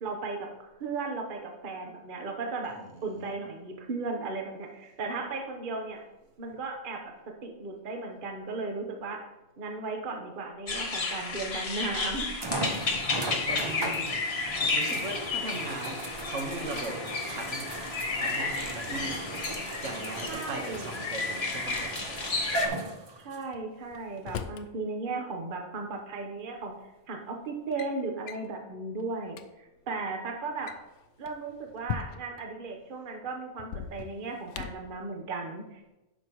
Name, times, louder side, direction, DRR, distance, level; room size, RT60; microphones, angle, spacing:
voice 1, 0.0-2.7 3.0-6.0 6.4-7.0 7.4-9.2 9.6-12.3 20.3-21.0 23.2-26.7 27.1-30.7 31.2-35.9, right 3 dB, 45° right, 2 dB, 1.1 m, -36 dB
voice 2, 2.7-3.3 13.0-14.1 14.7-17.0 17.3-17.7 18.2-19.2 19.8-22.2, right 2 dB, 75° right, 2 dB, 1.6 m, -39 dB
sound 1, 10.7-22.7, left 4 dB, 55° left, 1.3 m, -32 dB
sound 2, 11.3-11.4 12.4-23.4 24.2-24.3 27.7-27.8, right 2 dB, 30° right, 0.5 m, -37 dB
Drawer open or close, 20.5-21.9 23.5-24.7 26.0-26.1 26.9-27.2 27.5-27.9 28.3-28.5 29.0-29.1 29.3-29.5 30.5-32.4 33.6-34.9, left 8 dB, 75° left, 0.9 m, -40 dB
10.0 x 6.4 x 3.0 m, 0.99 s
omnidirectional pair, 1.3 m